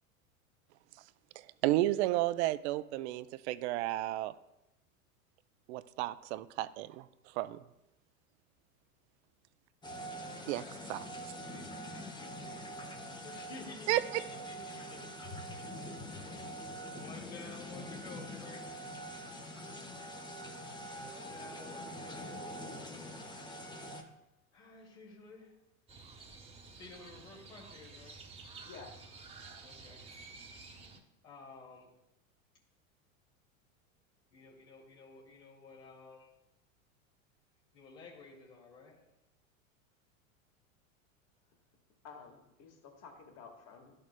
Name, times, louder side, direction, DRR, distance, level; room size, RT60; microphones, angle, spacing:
voice 1, 1.4-4.3 5.7-7.6 10.5-10.6 10.9-11.1 13.9-14.2, right 16 dB, 55° right, 15 dB, 0.5 m, -32 dB
sound 1, 9.8-24.0, equal, 10° left, 0.8 m, -44 dB
voice 2, 10.1-10.8 11.1-12.6 13.2-16.5 16.9-19.0 21.0-22.6 24.5-25.5 26.7-28.2 29.6-30.0 31.2-31.9 34.3-36.3 37.7-39.0, left 3 dB, 75° left, -4 dB, 2.3 m, -53 dB
Crow, 25.9-31.0, right 4 dB, 15° right, 1.0 m, -51 dB
voice 3, 28.6-29.0 42.0-43.9, left 5 dB, 40° left, 3 dB, 1.7 m, -51 dB
12.0 x 6.5 x 2.2 m, 0.91 s
hypercardioid pair, 95°, 41 cm